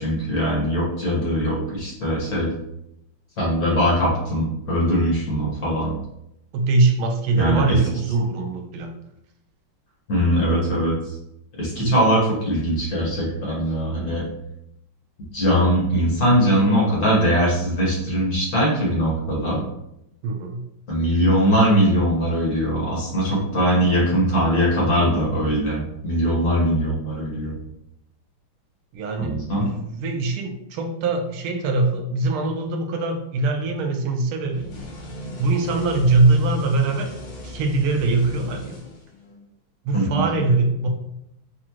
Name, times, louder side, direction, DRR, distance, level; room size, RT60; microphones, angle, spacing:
voice 1, 0.0-2.5 3.4-5.9 7.4-7.8 10.1-10.9 11.6-14.2 15.3-19.6 20.9-27.6 29.2-29.7 39.9-40.3, equal, 50° left, -5 dB, 1.7 m, -21 dB
voice 2, 6.5-8.9 11.8-12.0 20.2-20.6 28.9-34.7 35.4-37.1 37.4-38.8 39.8-40.9, right 3 dB, 85° right, 4 dB, 1.5 m, -22 dB
sound 1, 34.5-39.4, equal, 85° left, 1.9 m, -37 dB
5.8 x 2.4 x 3.0 m, 0.80 s
omnidirectional pair, 2.3 m